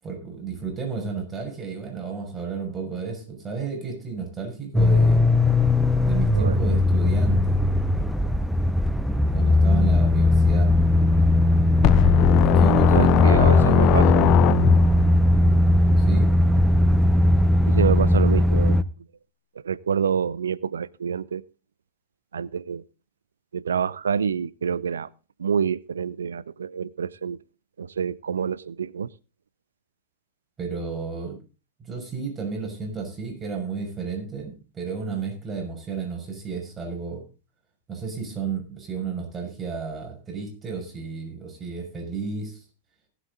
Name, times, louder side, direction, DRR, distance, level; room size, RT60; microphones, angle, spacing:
voice 1, 0.0-5.3 6.0-7.6 9.3-10.7 12.4-14.2 16.0-16.3 30.6-31.4 31.8-37.3 37.9-42.6, right 5 dB, 20° right, 6.2 m, -32 dB
sound 1, 4.7-18.8, left 1 dB, ahead, 0.9 m, -19 dB
sound 2, 11.8-15.1, left 14 dB, 40° left, 0.5 m, -19 dB
voice 2, 12.8-14.2 17.7-18.8 19.6-21.4 22.3-22.8 23.5-25.1 25.4-27.4 27.8-29.1, right 7 dB, 70° right, 0.6 m, -27 dB
19.0 x 8.4 x 3.9 m
figure-of-eight pair, 90°, 0 cm